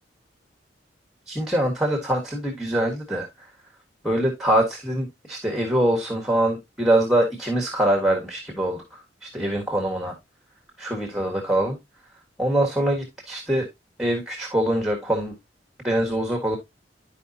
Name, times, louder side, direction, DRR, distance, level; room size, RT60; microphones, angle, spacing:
voice 1, 1.3-3.3 4.0-10.1 10.8-11.8 12.4-13.7 14.0-15.3 15.8-16.6, right 1 dB, ahead, 1 dB, 1.5 m, -24 dB
11.0 x 4.9 x 2.7 m, 0.19 s
head